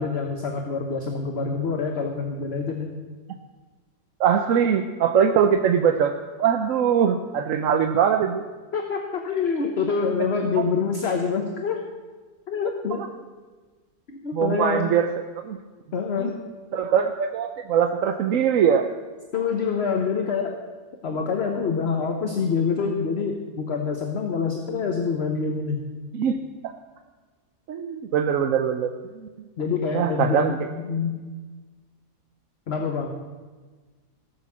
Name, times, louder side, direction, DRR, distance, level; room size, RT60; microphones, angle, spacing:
voice 1, 0.0-2.9 8.7-11.8 12.5-13.0 14.1-14.9 15.9-16.4 19.3-20.6 21.0-25.8 29.6-31.2 32.7-33.1, left 5 dB, 45° left, 3 dB, 1.1 m, -26 dB
voice 2, 4.2-6.1 6.4-8.4 10.6-10.7 14.3-15.1 15.5-15.6 16.2-16.3 16.7-18.9 26.1-26.4 27.7-29.3 29.9-30.6, right 8 dB, 65° right, 6 dB, 1.0 m, -22 dB
16.5 x 6.9 x 7.2 m, 1.4 s
omnidirectional pair, 1.7 m